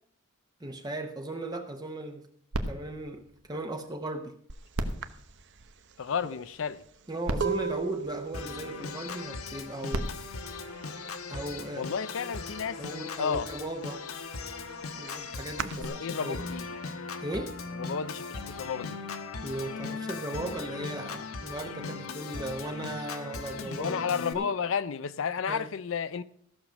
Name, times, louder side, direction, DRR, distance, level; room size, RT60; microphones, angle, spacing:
voice 1, 0.6-2.2 2.7-4.4 7.1-10.1 11.3-11.9 12.8-14.0 15.0-16.4 17.2-17.6 19.4-24.5 25.5-25.7, right 1 dB, 20° right, 0.8 m, -37 dB
sound 1, 2.5-4.2 4.7-6.3 7.0-7.1 7.2-8.8 9.6-11.5 12.2-12.3, right 1 dB, 85° right, 1.1 m, -37 dB
sound 2, 4.5-4.7 5.0-10.7 10.9-11.5 11.7-12.9 13.3-15.8, right 6 dB, 55° right, 0.7 m, -37 dB
voice 2, 6.0-6.8 11.8-12.8 13.2-13.5 15.8-16.7 17.7-19.0 23.8-26.2, left 6 dB, 65° left, 0.5 m, -32 dB
Organ, 8.3-24.3, left 4 dB, 90° left, 1.2 m, -39 dB
14.5 x 6.6 x 6.2 m
head